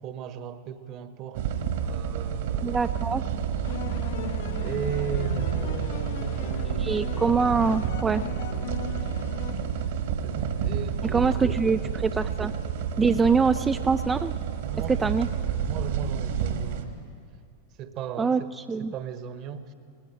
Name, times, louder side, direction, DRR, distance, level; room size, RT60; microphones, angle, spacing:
voice 1, 0.0-2.8 4.6-7.0 10.2-12.2 14.6-15.2 15.6-17.0 17.8-19.7, right 7 dB, 40° right, 12 dB, 1.2 m, -37 dB
sound 1, 1.3-16.8, right 8 dB, 55° right, 1.7 m, -30 dB
voice 2, 2.6-3.2 6.8-8.2 11.1-12.5 13.0-14.3 14.9-15.3 18.2-18.4 18.7-18.9, right 5 dB, 15° right, 10 dB, 0.4 m, -24 dB
sound 2, 3.6-10.3, left 11 dB, 55° left, 0.8 m, -38 dB
19.0 x 15.0 x 9.1 m, 2.4 s
figure-of-eight pair, 90°, 0 cm